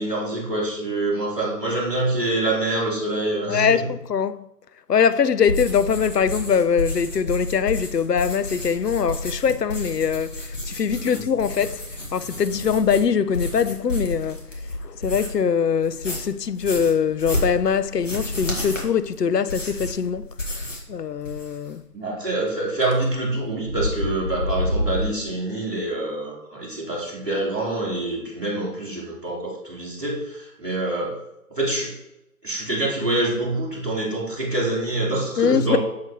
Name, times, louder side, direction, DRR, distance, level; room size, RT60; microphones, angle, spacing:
voice 1, 0.0-3.9 11.0-11.2 21.9-31.2 31.5-32.0 32.4-35.8, right 2 dB, 5° left, 1.8 m, -26 dB
voice 2, 3.5-4.5 4.9-11.8 12.1-14.4 14.8-20.3 20.9-21.8 35.4-35.8, left 7 dB, 80° left, 0.6 m, -22 dB
sound 1, 5.4-15.5 15.8-20.9 21.2-21.7, left 1 dB, 50° left, 1.9 m, -31 dB
sound 2, 22.8-23.0 23.5-25.1, left 1 dB, 50° right, 2.7 m, -25 dB
7.5 x 5.9 x 3.0 m
figure-of-eight pair, 170°, 47 cm